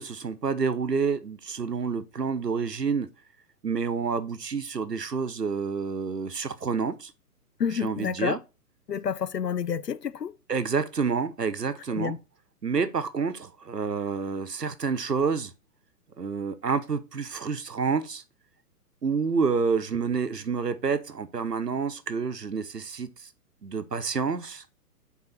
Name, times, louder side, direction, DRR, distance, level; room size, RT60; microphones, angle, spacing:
voice 1, 0.0-3.1 3.6-7.1 7.7-8.4 10.5-12.2 12.6-15.5 16.2-18.2 19.0-23.3 23.6-24.6, right 5 dB, 85° right, 1.1 m, -28 dB
voice 2, 7.6-8.4 8.9-10.3 12.0-12.2, left 7 dB, 85° left, 0.7 m, -29 dB
7.1 x 4.6 x 4.2 m
figure-of-eight pair, 125°, 47 cm